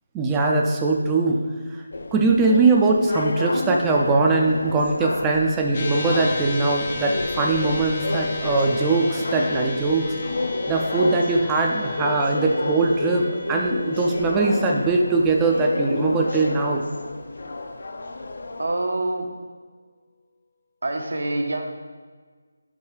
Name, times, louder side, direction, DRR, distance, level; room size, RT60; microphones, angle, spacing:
voice 1, 0.1-1.8 2.1-10.1 10.7-16.8, right 3 dB, 10° right, 0 dB, 0.4 m, -21 dB
sound 1, 1.9-18.7, left 2 dB, 65° left, 0.5 m, -30 dB
sound 2, 5.7-18.3, left 3 dB, 35° left, 0.8 m, -35 dB
voice 2, 18.6-19.4 20.8-22.0, right 2 dB, 75° right, 3 dB, 0.9 m, -27 dB
5.4 x 3.8 x 4.9 m, 1.5 s
figure-of-eight pair, 165°, 0 cm